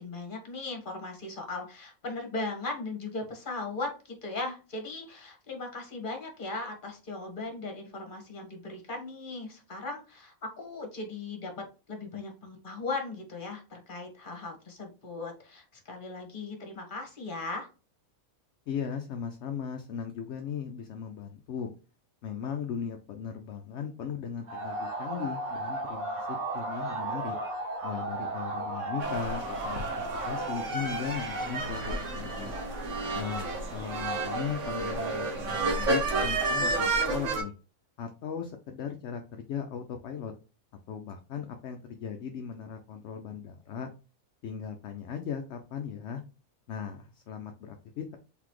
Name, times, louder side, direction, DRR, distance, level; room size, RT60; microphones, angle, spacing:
voice 1, 0.0-17.7, left 3 dB, 40° left, 3 dB, 1.4 m, -38 dB
voice 2, 18.7-21.7 22.2-27.4 27.8-32.6 33.1-37.5 38.0-40.3 40.9-43.9 44.4-46.2 46.7-48.2, left 7 dB, 65° left, 5 dB, 0.8 m, -37 dB
sound 1, 24.5-30.7, right 2 dB, 85° right, 1.8 m, -35 dB
sound 2, 29.0-37.4, right 2 dB, 65° right, 1.4 m, -31 dB
4.0 x 3.7 x 3.1 m, 0.32 s
omnidirectional pair, 1.5 m